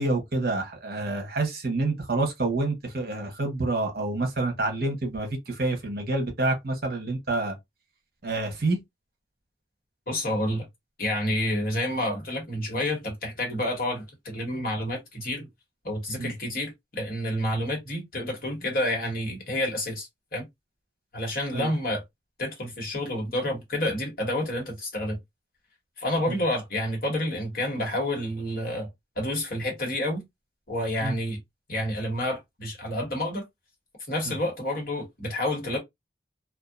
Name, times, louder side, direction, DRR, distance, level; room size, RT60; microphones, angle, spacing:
voice 1, 0.0-7.6 8.2-8.8 16.2-16.3 21.5-21.7 26.3-26.4 31.0-31.1 34.3-34.4, right 2 dB, 55° right, 0.9 m, -28 dB
voice 2, 10.1-10.7 11.0-15.5 15.8-20.5 21.1-22.0 22.4-25.2 26.0-28.9 29.2-30.2 30.7-31.4 31.7-33.4 34.1-35.8, left 1 dB, 50° left, 1.2 m, -29 dB
2.7 x 2.3 x 2.4 m
head